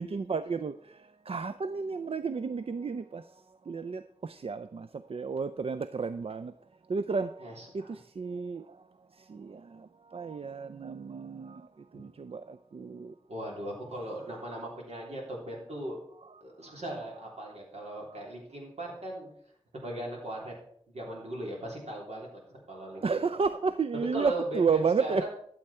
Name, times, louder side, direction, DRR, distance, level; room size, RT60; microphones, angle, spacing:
voice 1, 0.0-6.5 6.9-8.9 9.1-13.2 16.6-16.8 23.0-25.3, right 5 dB, 65° right, 0.4 m, -32 dB
voice 2, 7.4-8.0 13.3-16.0 16.4-19.3 19.7-20.5 20.9-22.3 22.7-23.2 24.1-25.3, right 1 dB, 85° right, 3.4 m, -38 dB
12.5 x 7.7 x 4.3 m
wide cardioid pair, 60°, 11 cm